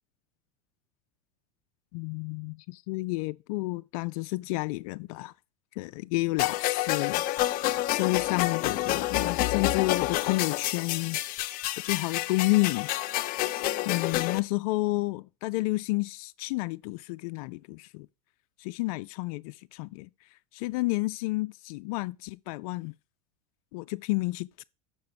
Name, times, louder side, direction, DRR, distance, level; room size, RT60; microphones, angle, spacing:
voice 1, 1.9-5.3 5.8-11.2 11.8-12.9 13.3-13.4 13.9-18.1 18.6-20.1 20.5-22.9 23.7-24.6, left 22 dB, 65° left, 0.4 m, -30 dB
sound 1, 6.4-14.4, left 16 dB, 50° left, 0.8 m, -28 dB
6.8 x 5.5 x 6.8 m
supercardioid pair, 110°, 20 cm